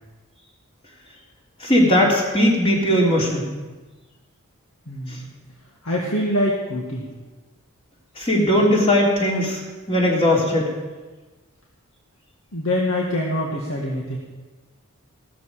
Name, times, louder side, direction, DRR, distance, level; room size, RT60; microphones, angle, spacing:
voice 1, 1.6-3.5 8.2-9.6 9.9-10.7, left 1 dB, 25° left, -3 dB, 3.3 m, -18 dB
voice 2, 4.9-5.2 5.8-7.1 12.5-14.2, left 1 dB, 70° left, -3 dB, 2.1 m, -24 dB
16.5 x 13.5 x 5.1 m, 1.3 s
head